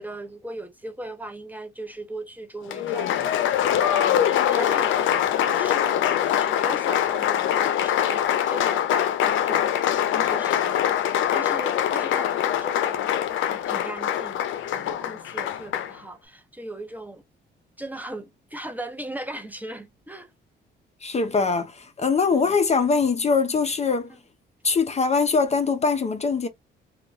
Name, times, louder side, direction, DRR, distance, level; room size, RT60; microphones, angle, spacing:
voice 1, 0.0-13.1 13.4-14.4 14.7-17.2 17.8-20.3 22.3-22.5, right 1 dB, 10° right, 0.6 m, -38 dB
Applause, 2.7-16.0, left 10 dB, 75° left, 0.5 m, -23 dB
voice 2, 21.0-24.1 24.6-26.5, left 4 dB, 35° left, 0.6 m, -22 dB
3.0 x 2.3 x 2.5 m
cardioid pair, 90°, 20 cm